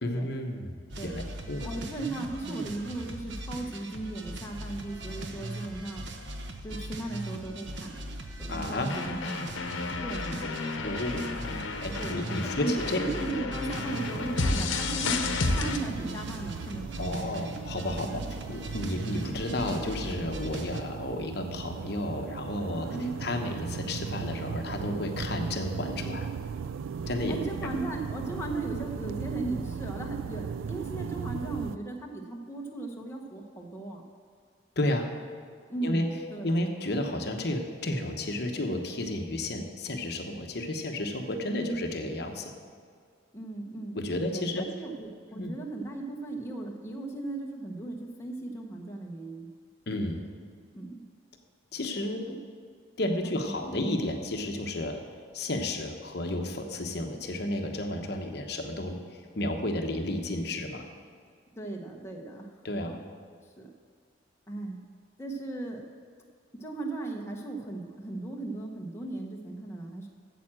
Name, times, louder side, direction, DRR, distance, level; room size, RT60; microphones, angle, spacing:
voice 1, 0.0-1.2 1.5-1.7 8.5-8.9 10.8-13.0 17.0-26.3 27.1-27.4 34.8-35.1 35.8-36.1 36.4-42.5 43.9-44.7 45.3-45.6 49.9-50.2 51.7-52.2 53.0-60.8 62.6-63.0, left 1 dB, 55° left, 4 dB, 0.9 m, -32 dB
sound 1, 0.9-20.8, right 1 dB, 65° right, 0.8 m, -40 dB
voice 2, 1.6-6.0 6.6-8.1 8.4-9.2 10.0-10.3 12.0-15.2 15.5-17.2 17.5-17.6 18.0-18.2 22.9-23.2 27.3-34.0 35.7-36.5 41.6-41.9 43.3-44.0 44.3-49.5 50.7-51.0 52.3-52.4 53.2-53.7 61.6-62.5 62.9-63.0 63.4-63.7 64.5-64.8 65.2-65.8 66.6-70.1, right 2 dB, 15° left, -1 dB, 0.9 m, -37 dB
sound 2, 8.9-15.8, left 3 dB, 80° left, 0.9 m, -32 dB
sound 3, 13.8-31.8, right 6 dB, 85° right, 0.4 m, -38 dB
9.2 x 7.5 x 7.5 m, 2.1 s
head